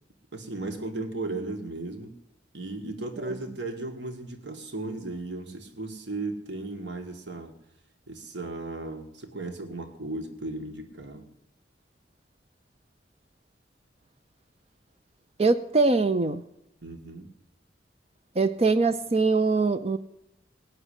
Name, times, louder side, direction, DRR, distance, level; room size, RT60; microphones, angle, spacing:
voice 1, 0.3-2.1 2.5-7.5 8.1-11.3 16.8-17.3, right 2 dB, 70° right, 5 dB, 1.7 m, -36 dB
voice 2, 15.4-16.4 18.4-20.0, right 3 dB, 35° right, 10 dB, 0.5 m, -23 dB
19.0 x 6.4 x 10.0 m, 0.87 s
head